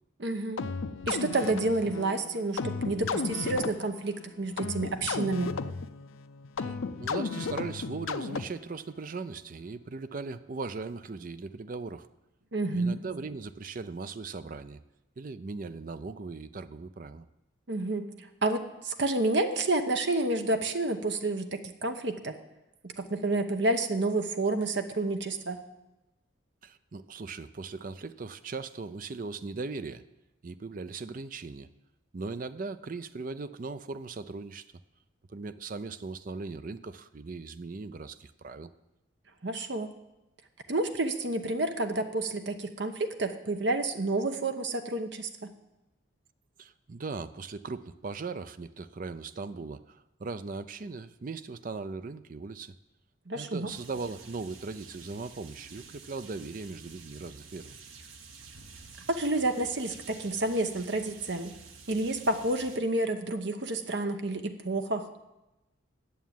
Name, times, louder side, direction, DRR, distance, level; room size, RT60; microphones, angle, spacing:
voice 1, 0.2-0.7 1.1-5.6 12.5-13.0 17.7-22.3 22.8-25.6 39.4-39.9 40.7-45.5 53.3-53.7 59.1-61.5 61.9-65.0, right 2 dB, 60° right, 7 dB, 0.9 m, -29 dB
sound 1, 0.6-8.8, left 4 dB, 80° left, 0.5 m, -35 dB
voice 2, 6.6-12.1 12.7-14.8 15.2-17.2 26.6-30.0 30.4-31.7 32.1-34.6 35.3-38.7 46.6-52.7 53.3-57.8, right 4 dB, 40° right, 12 dB, 0.4 m, -39 dB
sound 2, 53.7-62.8, right 5 dB, 80° right, 1.1 m, -50 dB
9.4 x 7.1 x 9.1 m, 0.97 s
head